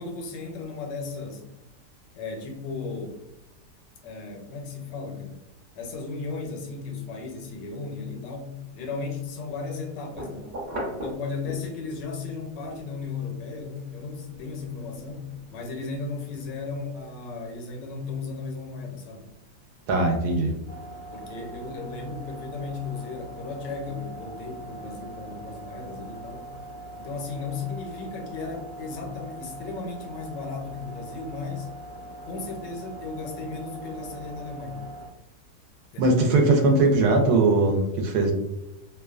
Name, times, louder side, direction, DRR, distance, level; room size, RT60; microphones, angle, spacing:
voice 1, 0.0-1.4 2.1-3.2 4.0-5.4 5.7-10.5 10.9-19.3 21.1-26.5 27.0-31.7 32.2-34.8 35.9-36.2, left 4 dB, 85° left, 2 dB, 1.3 m, -35 dB
sound 1, 10.1-12.0 12.4-17.1, equal, 50° right, 0.9 m, -40 dB
voice 2, 19.9-20.5 36.0-38.3, right 2 dB, 70° right, 2 dB, 1.0 m, -20 dB
sound 2, 20.7-35.1, right 2 dB, 25° right, 0.5 m, -42 dB
3.0 x 2.2 x 2.3 m, 0.90 s
omnidirectional pair, 1.8 m